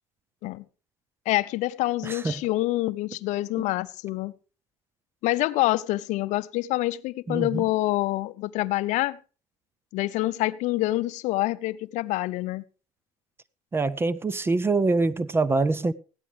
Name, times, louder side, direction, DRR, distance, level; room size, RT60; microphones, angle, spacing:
voice 1, 1.3-4.3 5.2-9.2 9.9-12.6, left 17 dB, 60° left, 0.6 m, -26 dB
voice 2, 2.0-2.4 7.3-7.6 13.7-15.9, right 3 dB, 15° right, 0.5 m, -24 dB
16.5 x 12.0 x 3.3 m
supercardioid pair, 115°, 14 cm